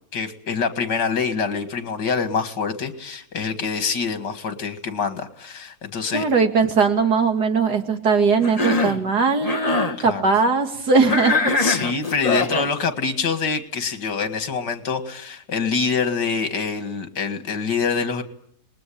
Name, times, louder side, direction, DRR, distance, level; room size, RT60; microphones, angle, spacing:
voice 1, 0.1-6.2 10.1-10.2 11.6-18.2, left 5 dB, 80° left, 9 dB, 2.5 m, -25 dB
voice 2, 6.1-11.5, right 4 dB, 70° right, 5 dB, 2.8 m, -20 dB
Cough, 8.4-9.0 9.4-10.0 11.1-12.7, left 3 dB, 25° left, 1.5 m, -22 dB
27.0 x 20.5 x 8.6 m, 0.69 s
omnidirectional pair, 1.8 m